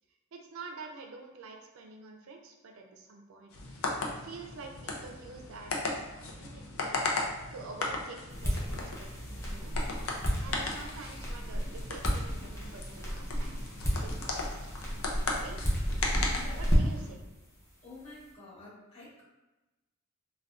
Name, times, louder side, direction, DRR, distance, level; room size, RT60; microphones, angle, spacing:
voice 1, 0.3-9.2 9.5-9.7 10.4-14.7 15.4-15.7 16.6-17.2, right 4 dB, 75° right, 3 dB, 0.4 m, -48 dB
sound 1, 3.5-17.1, left 3 dB, 75° left, 0.5 m, -37 dB
sound 2, 8.3-17.1, equal, 15° left, 0.6 m, -32 dB
voice 2, 17.8-19.2, left 2 dB, 30° left, -8 dB, 1.0 m, -49 dB
3.4 x 2.2 x 2.4 m, 1.1 s
head